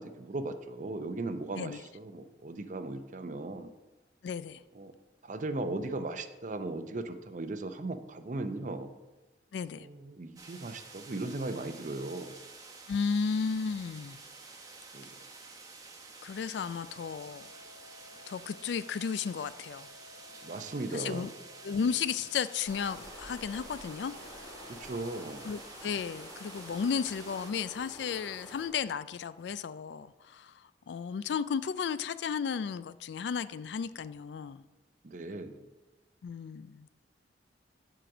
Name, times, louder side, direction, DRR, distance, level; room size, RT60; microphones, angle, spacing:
voice 1, 0.0-3.7 4.7-4.9 5.2-8.9 9.7-12.4 14.9-15.1 20.4-21.3 24.7-25.4 35.0-35.7, right 2 dB, 45° right, 9 dB, 0.6 m, -37 dB
voice 2, 4.2-4.6 9.5-9.9 12.9-14.2 16.2-17.5 18.3-19.9 20.9-21.3 21.6-24.5 25.4-34.6 36.2-36.9, left 6 dB, 70° left, 15 dB, 0.3 m, -34 dB
sound 1, 10.4-27.5, right 3 dB, 20° right, 0.9 m, -50 dB
sound 2, 16.9-25.4, left 4 dB, 50° left, 1.1 m, -56 dB
sound 3, 22.6-28.7, left 1 dB, 25° left, 1.8 m, -49 dB
7.7 x 4.9 x 6.0 m, 1.1 s
head